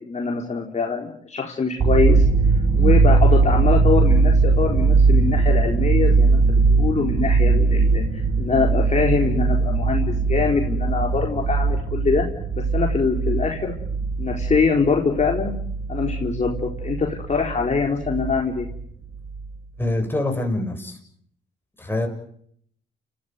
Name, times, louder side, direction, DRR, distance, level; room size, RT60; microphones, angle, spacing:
voice 1, 0.0-2.2 2.8-12.2 12.7-13.7 14.2-15.5 15.9-18.7, left 5 dB, 35° left, 0 dB, 4.4 m, -23 dB
sound 1, 1.8-18.9 19.2-19.5, right 4 dB, 50° right, 3.4 m, -20 dB
voice 2, 19.8-21.0 21.8-22.1, left 1 dB, 10° left, 3 dB, 7.7 m, -25 dB
30.0 x 15.5 x 9.6 m, 0.67 s
cardioid pair, 90°, 20 cm